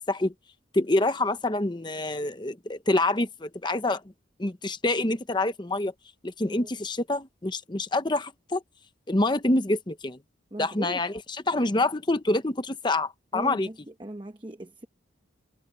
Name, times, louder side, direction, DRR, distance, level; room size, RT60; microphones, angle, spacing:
voice 1, 0.7-4.0 4.4-5.9 6.2-8.6 9.1-10.2 10.6-13.7, left 2 dB, 25° left, 0.9 m, -26 dB
voice 2, 10.5-11.0 13.3-13.7 14.0-14.9, right 1 dB, 25° right, 1.0 m, -38 dB
head